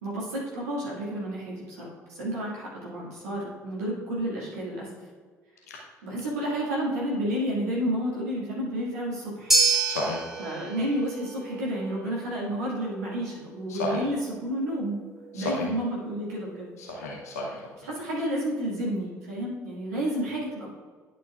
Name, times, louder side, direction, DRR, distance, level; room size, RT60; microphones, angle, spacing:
voice 1, 0.0-4.9 6.0-9.5 10.4-15.0 15.3-16.7 17.8-20.7, equal, 75° right, -5 dB, 2.0 m, -31 dB
sound 1, 9.5-17.9, right 3 dB, 5° right, 2.1 m, -31 dB
voice 2, 9.9-10.2 13.7-14.0 15.3-15.7 16.8-17.9, left 1 dB, 75° left, -1 dB, 0.8 m, -32 dB
10.5 x 6.7 x 2.4 m, 1.5 s
figure-of-eight pair, 50°, 8 cm